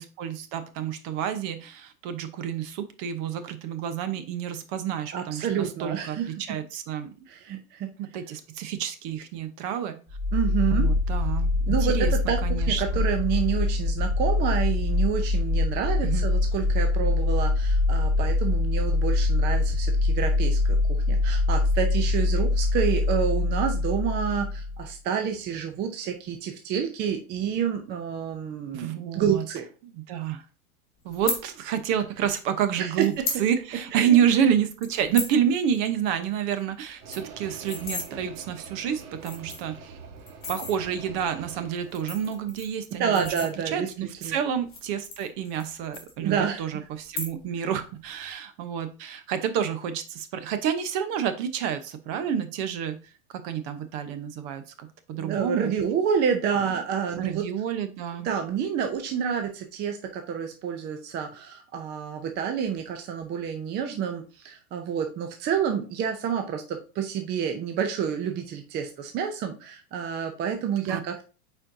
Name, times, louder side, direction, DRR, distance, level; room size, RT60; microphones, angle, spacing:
voice 1, 0.0-7.1 8.0-10.0 10.7-12.1 12.4-12.8 16.0-16.2 28.7-29.4 29.8-30.4 31.0-33.1 33.4-39.9 40.5-43.3 43.7-53.0 53.3-55.7 57.2-58.3 70.9-71.0, right 8 dB, 45° right, 10 dB, 0.9 m, -29 dB
voice 2, 5.1-6.3 7.3-7.9 10.3-10.9 11.7-29.6 32.8-33.2 33.9-34.2 43.0-44.4 46.2-46.8 55.2-57.5 58.2-71.2, right 7 dB, 25° right, 5 dB, 0.6 m, -29 dB
sound 1, 10.1-24.9, left 2 dB, ahead, 1.0 m, -24 dB
sound 2, 31.1-31.4 32.4-32.5 33.0-33.4 33.8-33.9 34.1-34.4 34.8-35.4 35.7-35.9 36.2-36.3 36.6-36.7 36.9-38.1 38.7-38.8 39.2-39.8 40.3-40.7 41.7-43.9 44.6-45.7 45.9-46.6 47.0-47.6 47.9-48.3, left 4 dB, 20° left, 3.0 m, -34 dB
sound 3, 37.0-42.4, right 5 dB, 75° right, 1.3 m, -45 dB
8.4 x 4.5 x 2.7 m, 0.35 s
supercardioid pair, 140°, 43 cm